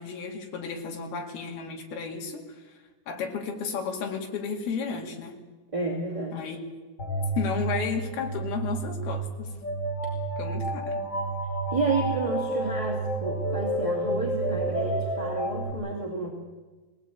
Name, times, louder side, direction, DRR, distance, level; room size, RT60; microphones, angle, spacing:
voice 1, 0.0-2.8 3.1-5.4 6.3-6.6 7.4-9.5 10.4-11.0, left 5 dB, 80° left, 2 dB, 4.2 m, -33 dB
voice 2, 5.7-6.4 11.7-16.3, right 3 dB, 10° right, -1 dB, 1.6 m, -30 dB
sound 1, 7.0-15.7, right 1 dB, 30° left, 1.5 m, -30 dB
21.5 x 17.5 x 8.6 m, 1.3 s
omnidirectional pair, 4.4 m